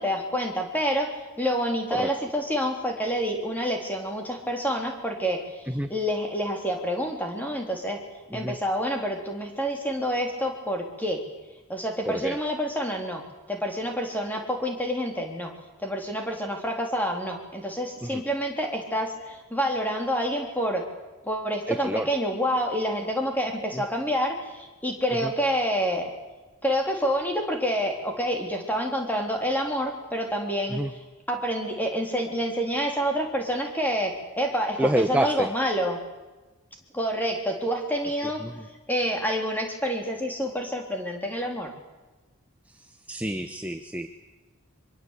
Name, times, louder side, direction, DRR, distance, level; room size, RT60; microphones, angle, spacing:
voice 1, 0.0-8.0 8.3-11.2 11.7-13.2 13.5-15.5 15.8-20.8 21.2-26.1 26.6-30.8 31.3-36.0 36.9-38.4 38.9-41.7, equal, 10° left, 2 dB, 3.7 m, -28 dB
voice 2, 12.0-12.4 18.0-18.2 21.7-22.1 23.7-23.8 25.2-25.3 30.7-30.9 34.8-35.5 38.4-38.6 42.7-44.1, right 1 dB, 5° right, 7 dB, 0.9 m, -28 dB
24.5 x 23.0 x 8.4 m, 1.1 s
head